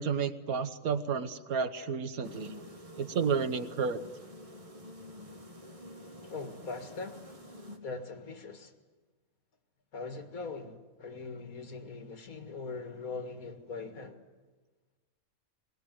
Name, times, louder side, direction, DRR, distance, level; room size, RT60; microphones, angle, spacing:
voice 1, 0.0-2.6 3.0-4.0, right 6 dB, 80° right, 1.6 m, -31 dB
sound 1, 2.2-7.8, left 1 dB, 25° right, 2.0 m, -48 dB
voice 2, 6.2-7.3 7.8-8.7 9.9-14.2, left 4 dB, 80° left, 2.2 m, -41 dB
21.5 x 19.5 x 9.1 m
omnidirectional pair, 1.5 m